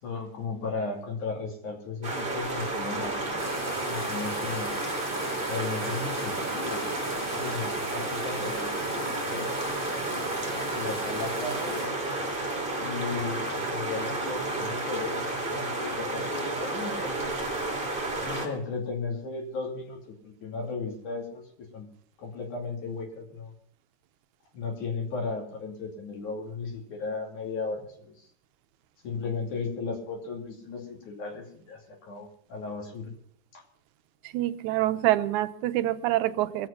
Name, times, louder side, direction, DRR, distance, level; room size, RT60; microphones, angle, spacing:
voice 1, 0.0-3.6 3.9-4.7 5.5-11.9 12.8-17.4 18.2-21.9 22.2-23.5 24.5-28.3 29.0-33.1 33.5-33.6, left 4 dB, 80° left, 1 dB, 4.3 m, -36 dB
sound 1, 2.0-18.5, right 2 dB, 15° right, 2.7 m, -31 dB
sound 2, 3.4-11.9, equal, 10° left, 1.2 m, -40 dB
voice 2, 34.2-36.7, right 15 dB, 80° right, 11 dB, 2.1 m, -26 dB
23.0 x 7.9 x 5.7 m, 0.63 s
omnidirectional pair, 3.4 m